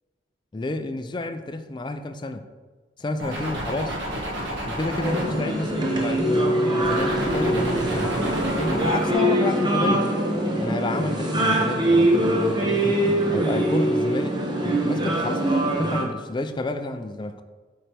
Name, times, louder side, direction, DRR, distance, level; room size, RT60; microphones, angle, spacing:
voice 1, 0.5-2.5 3.0-4.0 4.7-8.2 8.8-10.1 10.6-13.0 13.3-14.4 14.8-17.4, left 2 dB, 25° left, 7 dB, 0.4 m, -30 dB
sound 1, 3.2-6.4 6.8-9.1, equal, 70° right, 1.6 m, -31 dB
sound 2, 5.0-16.0, right 1 dB, 25° right, 0.8 m, -23 dB
8.6 x 4.4 x 3.4 m, 1.4 s
head